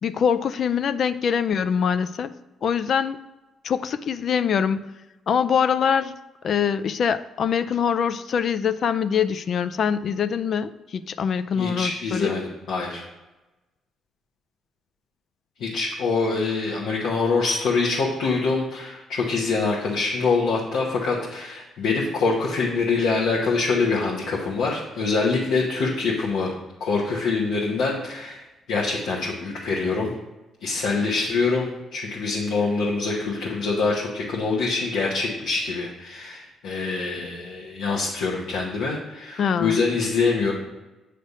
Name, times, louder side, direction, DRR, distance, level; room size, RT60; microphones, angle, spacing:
voice 1, 0.0-2.3 2.6-3.2 3.6-4.9 5.3-6.1 6.4-12.4 39.4-39.8, left 7 dB, 60° left, 12 dB, 0.4 m, -24 dB
voice 2, 11.6-13.0 15.6-26.5 26.8-30.1 30.6-40.5, left 4 dB, 85° left, -4 dB, 1.1 m, -25 dB
8.2 x 3.3 x 5.4 m, 1.1 s
cardioid pair, 90°, 0 cm